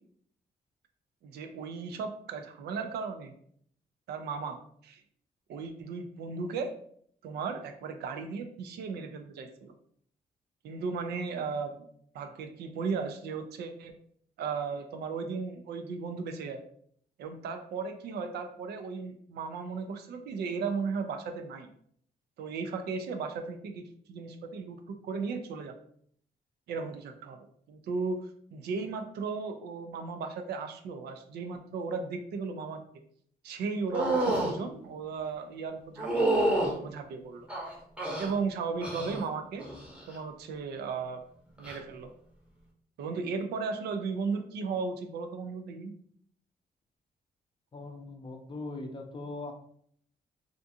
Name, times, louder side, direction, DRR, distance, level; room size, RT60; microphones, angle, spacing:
voice 1, 1.2-3.4 4.1-4.6 4.8-5.0 5.5-6.7 7.2-9.7 10.6-11.9 12.1-13.9 14.4-16.6 17.2-21.7 22.4-23.8 24.1-25.7 26.7-32.8 33.4-37.5 38.2-39.6 40.1-41.2 41.6-42.1 43.0-45.9, right 4 dB, 85° right, 6 dB, 0.4 m, -36 dB
sound 1, 33.9-34.5 36.0-36.7 37.5-38.3 38.8-39.2 39.6-40.0 41.6-41.8, right 1 dB, 5° right, 0.7 m, -28 dB
voice 2, 47.7-49.5, left 2 dB, 30° left, 4 dB, 0.5 m, -40 dB
2.5 x 2.3 x 2.6 m, 0.63 s
cardioid pair, 90°, 16 cm